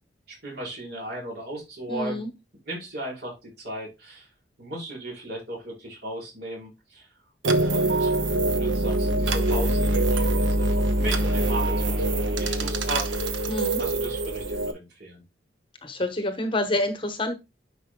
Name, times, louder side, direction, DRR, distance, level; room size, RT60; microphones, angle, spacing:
voice 1, 0.3-2.2 2.6-4.3 4.6-7.1 7.6-8.1 8.5-13.1 13.8-15.2, right 1 dB, 60° right, -2 dB, 4.4 m, -36 dB
voice 2, 1.9-2.3 13.5-13.8 15.8-17.3, left 1 dB, 30° left, 8 dB, 1.0 m, -27 dB
sound 1, 7.4-14.7, right 2 dB, 90° right, 1.0 m, -24 dB
9.8 x 5.5 x 2.2 m, 0.23 s
head